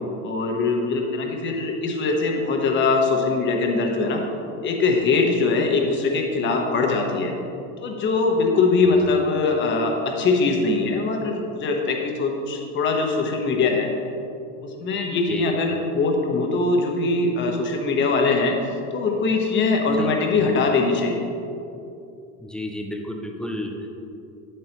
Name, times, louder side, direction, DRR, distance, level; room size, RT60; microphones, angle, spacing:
voice 1, 0.2-4.2 4.6-7.3 7.8-13.9 14.6-18.6 18.9-21.2, left 3 dB, 30° left, 1 dB, 1.1 m, -22 dB
voice 2, 22.4-23.9, left 1 dB, 5° left, 1 dB, 0.3 m, -31 dB
9.7 x 7.8 x 3.0 m, 2.7 s
supercardioid pair, 150°, 36 cm